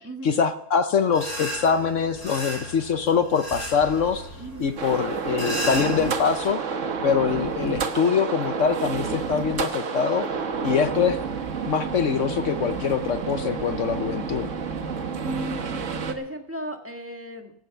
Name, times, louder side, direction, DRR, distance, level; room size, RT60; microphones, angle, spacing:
voice 1, 0.2-4.3 4.6-6.6 7.0-10.3 10.6-11.2 11.6-14.5, left 6 dB, 60° left, 10 dB, 1.0 m, -24 dB
sound 1, 1.1-6.5, equal, 10° left, 6.4 m, -35 dB
voice 2, 4.4-4.7 15.2-17.5, right 1 dB, 10° right, 4 dB, 1.5 m, -35 dB
sound 2, 4.8-16.1, right 5 dB, 55° right, 1.4 m, -29 dB
15.5 x 9.2 x 6.9 m, 0.73 s
omnidirectional pair, 1.6 m